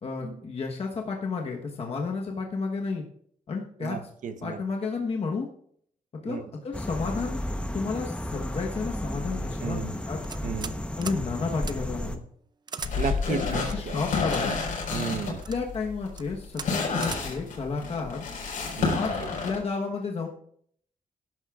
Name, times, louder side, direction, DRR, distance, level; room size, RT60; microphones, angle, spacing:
voice 1, 0.0-3.0 3.5-4.0 4.4-5.5 6.1-7.4 7.7-10.2 11.0-12.2 13.3-14.5 15.5-18.2 18.9-19.2 19.4-20.3, left 4 dB, 50° left, 0 dB, 1.2 m, -31 dB
voice 2, 3.8-4.6 6.3-6.4 9.6-9.9 10.4-10.8 13.0-14.0 14.9-15.4 18.8-19.3, right 6 dB, 70° right, 8 dB, 1.1 m, -34 dB
sound 1, 6.7-12.2, left 1 dB, 10° left, 1.0 m, -33 dB
sound 2, 10.2-10.8 11.0-11.2 11.6-11.8 12.7-12.9 13.7-14.4 15.1-15.6 16.1-16.2 16.5-16.7 17.0-17.2, right 5 dB, 30° right, 0.5 m, -38 dB
sound 3, 12.8-19.6, left 4 dB, 85° left, 4.4 m, -30 dB
19.0 x 10.5 x 2.5 m, 0.65 s
wide cardioid pair, 140°, 14 cm